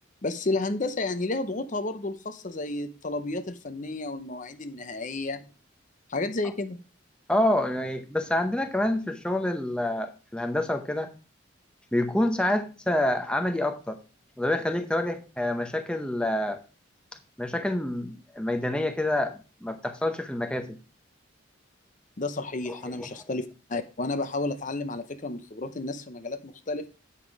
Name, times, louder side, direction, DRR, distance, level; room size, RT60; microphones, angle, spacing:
voice 1, 0.2-5.5 6.1-6.8 22.2-26.9, left 2 dB, 40° left, 10 dB, 0.7 m, -31 dB
voice 2, 7.3-11.1 11.9-14.0 14.4-16.6 17.4-19.3 19.6-20.8 22.9-23.1, left 1 dB, 5° left, 6 dB, 0.8 m, -27 dB
9.0 x 5.8 x 4.7 m, 0.33 s
head